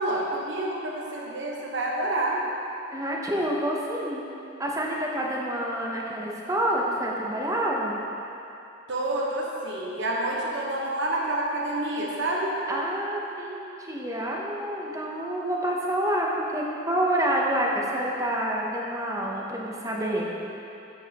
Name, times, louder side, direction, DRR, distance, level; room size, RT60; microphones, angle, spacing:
voice 1, 0.0-2.4 8.9-12.6, right 1 dB, 65° right, -3 dB, 1.0 m, -28 dB
voice 2, 2.9-4.3 4.6-8.0 12.7-20.3, right 1 dB, 15° right, -2 dB, 0.7 m, -28 dB
7.9 x 7.3 x 2.9 m, 2.8 s
head